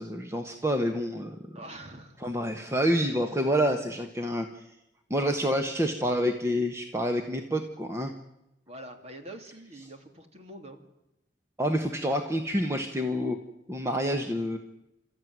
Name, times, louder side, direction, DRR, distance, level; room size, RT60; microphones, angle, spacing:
voice 1, 0.0-1.4 2.2-4.6 5.1-8.1 11.6-13.4 13.7-14.6, equal, 15° right, 4 dB, 1.3 m, -28 dB
voice 2, 1.5-2.2 8.7-10.8, right 1 dB, 35° right, 5 dB, 2.6 m, -45 dB
29.5 x 14.0 x 9.5 m, 0.91 s
head